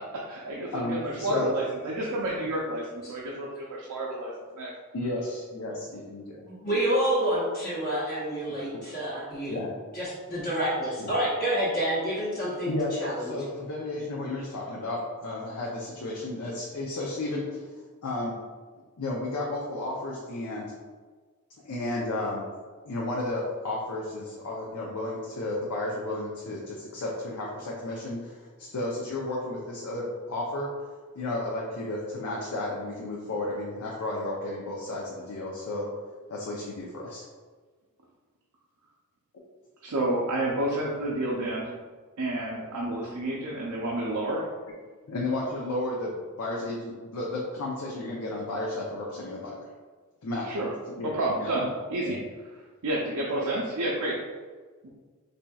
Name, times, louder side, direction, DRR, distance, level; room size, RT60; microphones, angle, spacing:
voice 1, 0.0-4.3 4.6-4.7 8.5-8.6 39.8-41.7 42.2-44.5 50.4-50.7 51.0-51.6 51.9-52.2 52.8-54.2 54.8-54.9, right 1 dB, 85° right, -4 dB, 0.5 m, -30 dB
voice 2, 0.7-1.5 4.9-6.4 9.5-9.7 11.0-11.1 12.6-17.7 18.0-18.4 19.0-20.7 21.6-22.5 22.8-30.7 31.1-35.9 36.3-37.3 45.1-49.7 50.2-50.5 51.0-51.5 52.0-52.1, left 2 dB, 85° left, -4 dB, 0.6 m, -33 dB
voice 3, 6.4-9.6 9.9-13.4, right 1 dB, 40° left, -10 dB, 0.9 m, -28 dB
4.3 x 2.7 x 2.3 m, 1.4 s
head